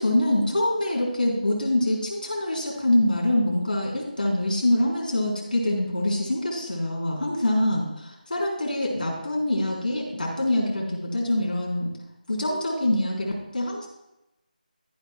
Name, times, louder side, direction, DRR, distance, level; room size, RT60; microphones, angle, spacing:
voice 1, 0.0-11.9 12.3-13.9, left 1 dB, 75° left, -2 dB, 3.8 m, -25 dB
13.5 x 5.7 x 4.5 m, 0.92 s
figure-of-eight pair, 175°, 5 cm